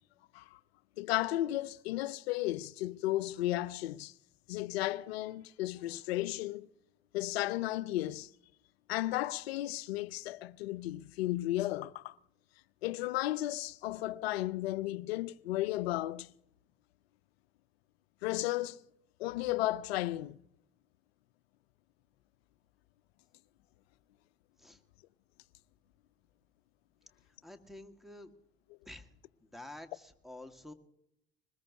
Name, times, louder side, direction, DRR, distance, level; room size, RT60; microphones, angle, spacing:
voice 1, 1.0-4.1 4.5-6.7 7.1-8.3 8.9-12.1 12.8-16.3 18.2-18.8 19.2-20.4, left 16 dB, 75° left, 0.5 m, -34 dB
voice 2, 27.4-28.3 28.9-29.1 29.4-30.7, left 1 dB, ahead, 1.7 m, -49 dB
21.0 x 20.5 x 2.8 m
figure-of-eight pair, 55°, 31 cm